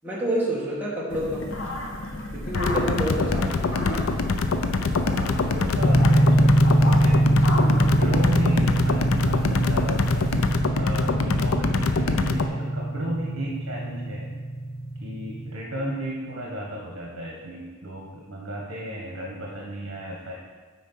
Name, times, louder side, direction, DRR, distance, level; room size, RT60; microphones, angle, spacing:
voice 1, 0.0-1.5 2.3-4.1, right 1 dB, 10° right, -6 dB, 1.6 m, -28 dB
sound 1, 1.1-10.5, left 1 dB, 65° left, 1.2 m, -35 dB
sound 2, 2.5-12.5, left 3 dB, 85° left, 0.5 m, -25 dB
voice 2, 3.0-3.5 5.0-7.2 7.8-10.4 10.8-14.3 15.0-20.3, right 1 dB, 65° right, -3 dB, 1.4 m, -33 dB
sound 3, 5.8-15.5, right 1 dB, 10° left, 1.2 m, -23 dB
8.6 x 4.3 x 5.6 m, 1.5 s
head